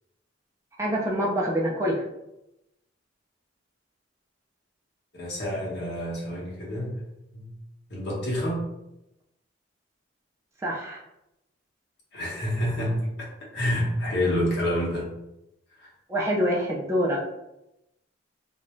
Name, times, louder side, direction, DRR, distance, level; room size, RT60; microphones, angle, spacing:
voice 1, 0.8-2.0 10.6-11.0 16.1-17.2, equal, 15° right, -3 dB, 0.3 m, -25 dB
voice 2, 5.1-6.9 7.3-7.5 7.9-8.6 12.1-15.1 15.8-15.9, equal, 55° left, -5 dB, 0.9 m, -28 dB
2.5 x 2.2 x 3.0 m, 0.88 s
head